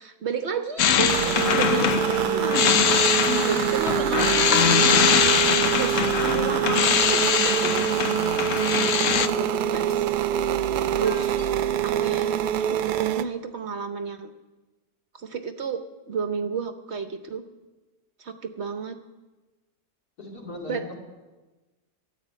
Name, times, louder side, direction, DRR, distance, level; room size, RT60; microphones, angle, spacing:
voice 1, 0.0-2.8 3.4-5.4 5.7-8.1 8.8-10.0 10.9-11.4 11.8-14.3 15.1-15.8 16.1-17.4 18.2-19.0 20.7-20.9, right 5 dB, 55° right, 8 dB, 0.9 m, -32 dB
sound 1, 0.8-9.3, left 8 dB, 60° left, 1.0 m, -22 dB
sound 2, 1.1-13.2, right 10 dB, 90° right, 1.1 m, -25 dB
sound 3, 1.9-2.0 2.4-2.5 3.2-3.3 3.9-5.2 5.7-6.1 6.6-6.8 7.2-7.3 7.7-7.9 8.6-8.7 9.2-10.5 11.0-11.5, left 2 dB, 20° left, 2.3 m, -45 dB
voice 2, 20.2-21.0, left 2 dB, 85° left, -1 dB, 3.3 m, -37 dB
13.5 x 8.3 x 9.0 m, 1.2 s
omnidirectional pair, 1.6 m